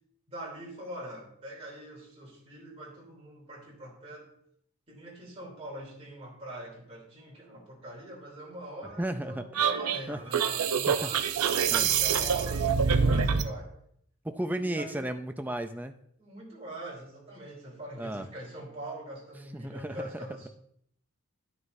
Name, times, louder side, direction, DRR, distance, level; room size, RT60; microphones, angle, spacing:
voice 1, 0.3-4.3 4.9-13.7 14.4-15.1 16.2-20.5, right 1 dB, 25° right, -4 dB, 3.0 m, -43 dB
voice 2, 9.0-9.4 10.1-10.2 10.9-11.1 11.7-11.9 13.3-13.4 14.2-15.9 18.0-18.3 19.5-20.0, right 1 dB, 10° right, 8 dB, 0.4 m, -33 dB
sound 1, 9.6-13.5, right 6 dB, 90° right, 0.6 m, -26 dB
11.0 x 9.7 x 2.6 m, 0.69 s
head